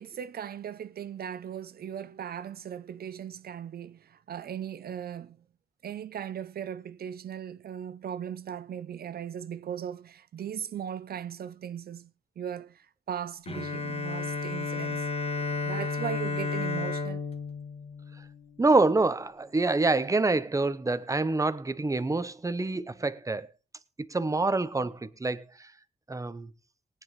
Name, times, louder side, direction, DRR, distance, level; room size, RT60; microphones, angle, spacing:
voice 1, 0.0-5.4 5.8-15.1 15.6-17.2, right 9 dB, 70° right, 0.5 m, -38 dB
Bowed string instrument, 13.5-18.9, left 4 dB, 40° left, 1.6 m, -33 dB
voice 2, 18.6-23.5 24.0-25.7 26.1-26.5, right 3 dB, 20° right, 0.8 m, -26 dB
19.5 x 9.4 x 3.1 m
wide cardioid pair, 95°, 16 cm